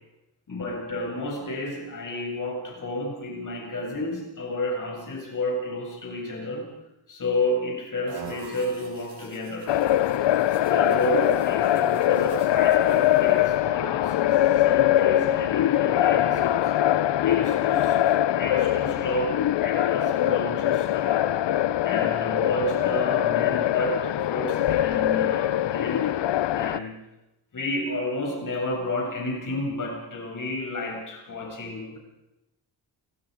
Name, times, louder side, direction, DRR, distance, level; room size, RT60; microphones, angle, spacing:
voice 1, 0.5-6.7 7.1-9.8 10.6-21.3 21.8-26.1 26.5-26.9 27.5-32.0, left 1 dB, 45° left, 0 dB, 7.7 m, -31 dB
sound 1, 8.1-13.5, right 5 dB, 65° right, 5.8 m, -46 dB
sound 2, 9.7-26.8, left 12 dB, 80° left, 0.8 m, -22 dB
29.5 x 24.5 x 5.4 m, 0.94 s
wide cardioid pair, 150°, 42 cm